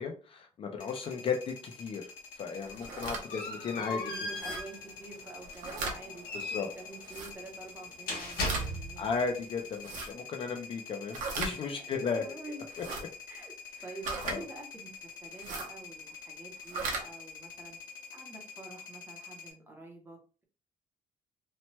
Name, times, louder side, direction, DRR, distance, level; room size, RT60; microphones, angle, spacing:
voice 1, 0.0-4.0 6.3-6.7 9.0-12.2 14.2-14.4, left 5 dB, 40° left, 3 dB, 0.4 m, -35 dB
sound 1, 0.8-19.5, left 5 dB, 65° left, 1.1 m, -48 dB
sound 2, 2.5-9.2, left 1 dB, 85° left, 1.2 m, -38 dB
sound 3, 2.7-3.2 4.3-4.6 5.4-6.0 7.0-7.3 8.2-8.7 9.7-10.1 11.1-11.5 12.7-13.0 14.0-14.4 15.3-15.7 16.6-17.0, right 4 dB, 65° right, 0.8 m, -37 dB
voice 2, 3.8-9.3 11.7-12.6 13.3-13.5 13.8-14.9 15.2-17.8 18.1-20.4, right 3 dB, 15° right, 1 dB, 0.6 m, -48 dB
2.9 x 2.1 x 2.9 m, 0.37 s
cardioid pair, 170°, 15 cm